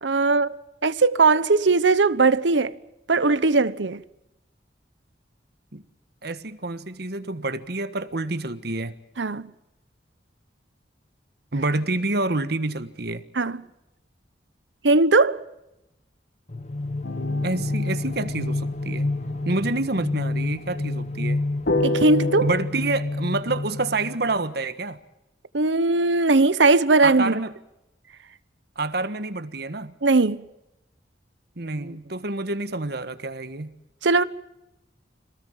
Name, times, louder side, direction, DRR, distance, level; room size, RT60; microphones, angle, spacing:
voice 1, 0.0-2.7 3.1-4.0 9.2-9.5 13.3-13.7 14.8-15.4 21.8-22.5 25.5-27.3 30.0-30.4 34.0-34.2, right 3 dB, 80° right, 1.0 m, -19 dB
voice 2, 6.2-8.9 11.5-13.2 17.4-19.1 19.4-21.4 22.4-25.0 27.0-27.5 28.7-29.9 31.6-33.7, right 2 dB, 60° right, 1.5 m, -28 dB
sound 1, 16.5-24.4, left 2 dB, 40° left, 1.1 m, -28 dB
sound 2, 17.0-19.5 21.7-22.6, left 2 dB, 65° left, 1.4 m, -28 dB
26.5 x 19.0 x 7.4 m
head